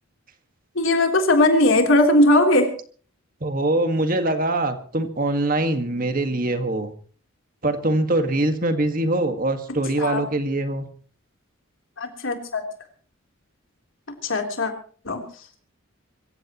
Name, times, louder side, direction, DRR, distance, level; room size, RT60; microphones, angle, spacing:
voice 1, 0.8-2.7 10.0-10.2 12.0-12.6 14.2-14.7 15.1-15.2, left 1 dB, 65° left, 3 dB, 3.6 m, -18 dB
voice 2, 3.4-6.9 7.6-10.9, right 2 dB, 40° right, 7 dB, 1.8 m, -23 dB
25.0 x 16.0 x 3.1 m, 0.43 s
head